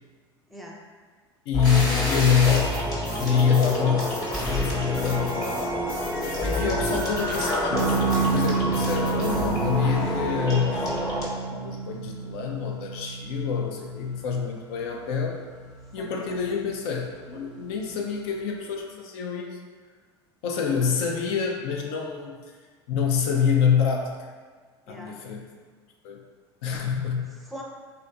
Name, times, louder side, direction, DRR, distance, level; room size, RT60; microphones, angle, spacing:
voice 1, 1.5-2.8 3.2-5.8 6.4-10.9 11.4-15.4 15.9-19.6 20.4-22.3 22.9-24.3 24.9-25.4 26.0-26.2 26.6-27.4, left 7 dB, 70° left, 1 dB, 0.4 m, -26 dB
sound 1, 1.5-11.3, left 1 dB, 25° left, 1.0 m, -27 dB
sound 2, 7.7-18.2, right 5 dB, 50° left, 0.9 m, -32 dB
voice 2, 16.0-16.8 24.9-25.2 27.4-27.6, left 1 dB, ahead, -1 dB, 0.6 m, -42 dB
3.2 x 2.8 x 2.4 m, 1.5 s
hypercardioid pair, 75°, 14 cm